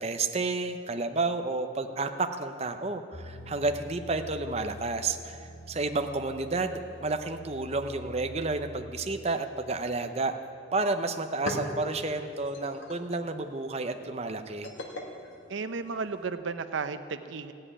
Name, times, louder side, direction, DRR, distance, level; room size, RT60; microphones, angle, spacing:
voice 1, 0.0-10.3 10.7-14.7, right 3 dB, 35° right, 6 dB, 0.7 m, -31 dB
sound 1, 3.1-8.9, left 2 dB, 40° left, 1.1 m, -46 dB
sound 2, 10.7-10.8 11.1-16.3, left 1 dB, 85° left, 1.9 m, -41 dB
voice 2, 15.5-17.5, right 4 dB, 75° right, 10 dB, 0.6 m, -34 dB
15.0 x 7.7 x 9.8 m, 2.5 s
head